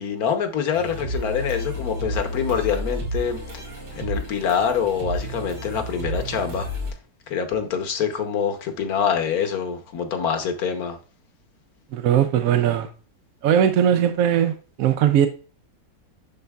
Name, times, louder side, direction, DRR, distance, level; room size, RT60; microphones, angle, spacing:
voice 1, 0.0-3.6 3.9-6.7 7.3-11.0, left 7 dB, 65° left, 1.4 m, -25 dB
sound 1, 0.7-6.9, equal, 90° right, 2.8 m, -31 dB
voice 2, 11.9-12.9 13.4-15.3, right 9 dB, 70° right, 0.9 m, -19 dB
10.5 x 3.9 x 2.3 m
omnidirectional pair, 1.8 m